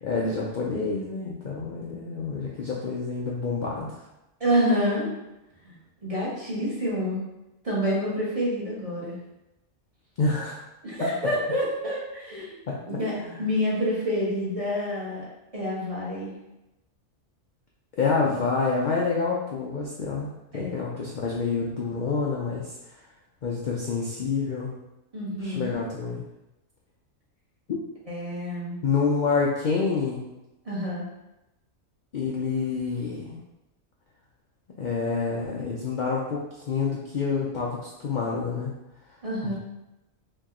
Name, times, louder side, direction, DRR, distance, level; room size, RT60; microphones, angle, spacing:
voice 1, 0.0-4.0 10.2-10.6 11.0-11.1 12.7-12.8 13.2-13.5 18.0-23.0 23.4-24.7 25.4-26.2 28.8-30.2 32.1-33.4 34.8-38.7 39.4-39.5, left 4 dB, 75° left, -3 dB, 0.4 m, -28 dB
voice 2, 4.4-5.1 5.6-5.7 6.0-7.2 7.6-9.2 10.8-12.5 12.9-15.2 15.5-16.3 20.5-20.8 25.1-25.8 28.1-28.8 30.6-31.1 39.2-39.5, equal, 30° right, -6 dB, 0.9 m, -27 dB
2.9 x 2.6 x 3.6 m, 0.94 s
omnidirectional pair, 1.4 m